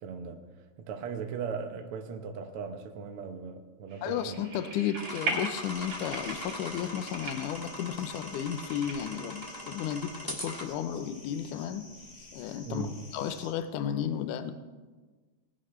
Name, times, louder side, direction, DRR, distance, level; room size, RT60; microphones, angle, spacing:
voice 1, 0.0-0.5 0.8-4.4 12.7-13.0, right 5 dB, 75° right, 5 dB, 1.3 m, -38 dB
sound 1, 3.9-9.5, right 3 dB, 45° right, 3.1 m, -39 dB
voice 2, 4.0-11.8 12.3-14.5, left 9 dB, 75° left, 10 dB, 2.1 m, -33 dB
sound 2, 5.0-10.6, equal, 10° left, 1.1 m, -41 dB
sound 3, 5.6-13.5, left 2 dB, 55° left, 3.1 m, -51 dB
20.0 x 11.0 x 3.2 m, 1.3 s
omnidirectional pair, 4.0 m